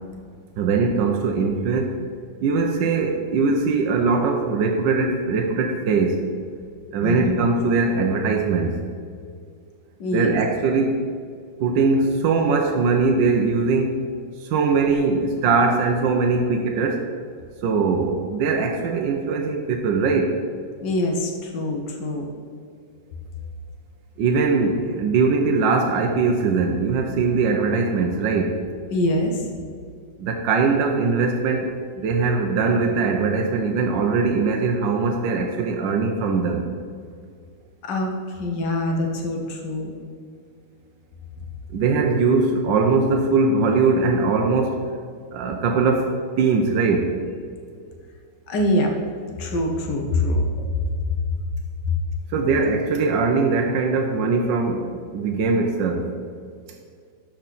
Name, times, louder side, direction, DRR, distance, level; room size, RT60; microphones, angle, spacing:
voice 1, 0.6-2.0 2.4-6.2 6.9-8.8 10.1-11.0 11.6-14.0 14.4-17.1 17.6-20.3 24.2-28.6 30.2-36.6 41.7-44.8 45.3-47.1 52.3-56.1, right 4 dB, 75° right, 3 dB, 1.3 m, -21 dB
voice 2, 7.0-7.4 10.0-10.4 20.8-22.3 28.9-29.5 37.8-39.9 48.5-48.9 49.4-50.9 51.8-52.0, left 1 dB, 65° left, 2 dB, 1.7 m, -24 dB
12.5 x 4.4 x 4.1 m, 2.2 s
omnidirectional pair, 2.1 m